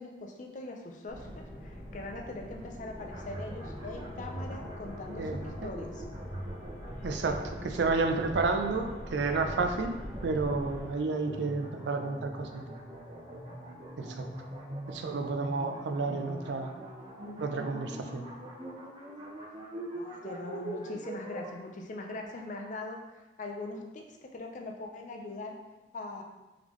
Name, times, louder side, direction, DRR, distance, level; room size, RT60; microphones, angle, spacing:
voice 1, 0.0-6.0 19.9-25.6 25.9-26.2, left 2 dB, 45° left, 2 dB, 0.5 m, -41 dB
sound 1, 1.1-10.9, equal, 5° left, 1.1 m, -43 dB
sound 2, 3.0-21.5, right 1 dB, 30° right, 0.8 m, -43 dB
voice 2, 5.2-5.7 7.0-10.0 10.2-12.6 14.0-14.3 14.9-16.7 17.4-18.2, right 3 dB, 85° right, 5 dB, 0.4 m, -31 dB
3.8 x 3.4 x 3.1 m, 1.1 s
head